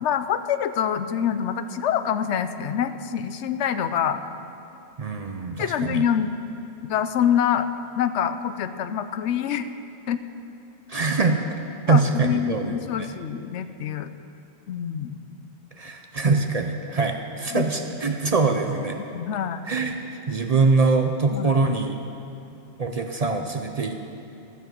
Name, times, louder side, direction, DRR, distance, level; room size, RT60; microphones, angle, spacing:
voice 1, 0.0-4.2 5.6-6.3 6.9-7.7 8.0-9.7 10.1-10.2 11.9-14.1 14.7-15.2 17.5-18.0 19.1-19.6 21.3-21.5, left 9 dB, 90° left, 11 dB, 0.9 m, -25 dB
voice 2, 5.0-6.0 10.9-11.4 11.9-13.1 15.8-19.0 19.7-22.0 22.8-24.1, right 3 dB, 45° right, 4 dB, 0.5 m, -23 dB
13.0 x 7.2 x 7.7 m, 2.7 s
omnidirectional pair, 1.2 m